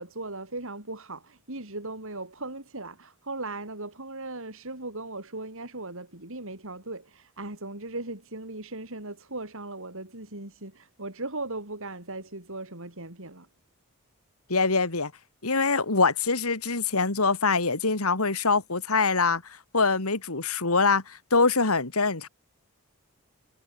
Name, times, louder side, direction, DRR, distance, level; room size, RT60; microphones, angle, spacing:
voice 1, 0.0-13.5, right 2 dB, 65° right, 6.1 m, -38 dB
voice 2, 14.5-15.1 15.4-22.3, left 4 dB, 80° left, 2.7 m, -24 dB
head